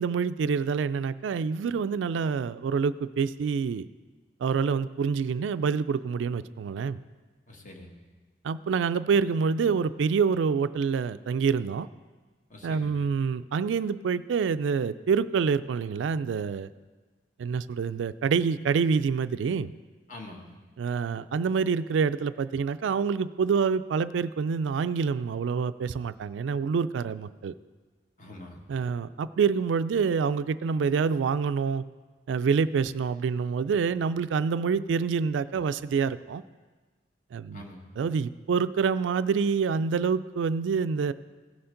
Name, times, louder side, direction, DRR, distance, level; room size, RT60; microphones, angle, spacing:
voice 1, 0.0-3.9 4.4-7.0 8.4-11.9 12.6-16.7 17.4-19.7 20.8-27.5 28.7-31.8 32.3-36.4 37.3-37.7 38.0-41.1, right 5 dB, 90° right, 14 dB, 0.3 m, -27 dB
voice 2, 7.5-8.0 12.5-13.0 20.1-20.5 28.2-28.6 37.5-37.9, left 2 dB, 45° left, 1 dB, 1.3 m, -45 dB
16.5 x 7.0 x 3.8 m, 1.4 s
head